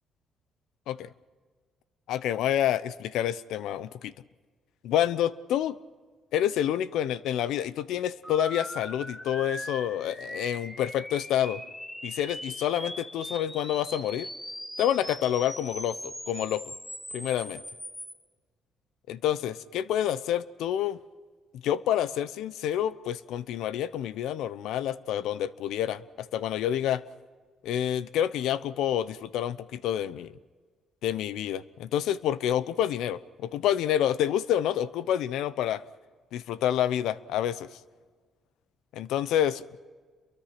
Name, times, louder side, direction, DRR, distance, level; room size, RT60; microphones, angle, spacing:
voice 1, 2.1-4.1 4.8-5.8 6.3-11.6 12.0-14.3 14.8-16.7 17.1-17.6 19.1-21.0 21.5-27.0 27.6-30.3 31.0-35.8 36.3-37.6 38.9-39.8, left 11 dB, 85° left, 16 dB, 0.8 m, -28 dB
sound 1, 8.2-18.1, equal, 10° left, 4.7 m, -40 dB
28.5 x 23.5 x 6.0 m, 1.5 s
cardioid pair, 90°, 0 cm